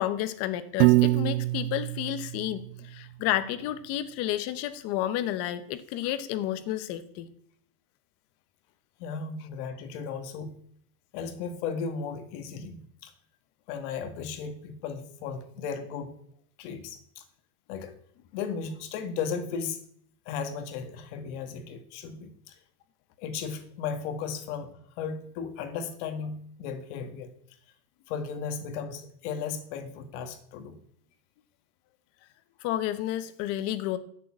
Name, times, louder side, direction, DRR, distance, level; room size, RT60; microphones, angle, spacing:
voice 1, 0.0-7.3 32.6-34.0, left 12 dB, 30° left, 12 dB, 1.0 m, -31 dB
Piano, 0.8-3.0, right 19 dB, 80° right, 0.5 m, -24 dB
voice 2, 9.0-10.6 11.1-13.1 13.7-16.2 16.6-17.2 17.7-18.0 18.3-19.8 20.3-22.6 23.2-27.3 28.1-30.8, left 6 dB, 50° left, 8 dB, 1.8 m, -35 dB
14.5 x 7.0 x 8.8 m, 0.66 s
supercardioid pair, 175°, 46 cm